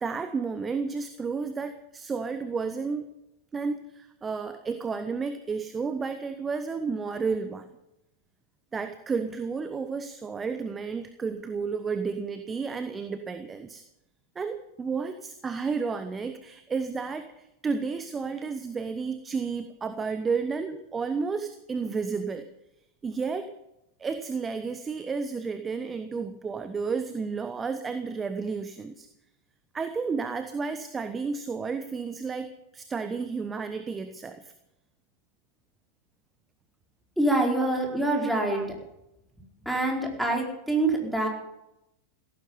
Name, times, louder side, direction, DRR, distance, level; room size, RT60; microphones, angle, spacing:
voice 1, 0.0-3.1 3.5-7.7 8.7-13.8 14.3-22.5 23.0-23.5 24.0-29.1 29.7-34.5 37.6-38.6 40.0-40.1, right 5 dB, 15° right, 9 dB, 1.1 m, -32 dB
voice 2, 37.2-38.8 39.6-41.3, right 2 dB, ahead, -1 dB, 4.8 m, -25 dB
16.5 x 15.0 x 5.6 m, 0.87 s
figure-of-eight pair, 90°, 0 cm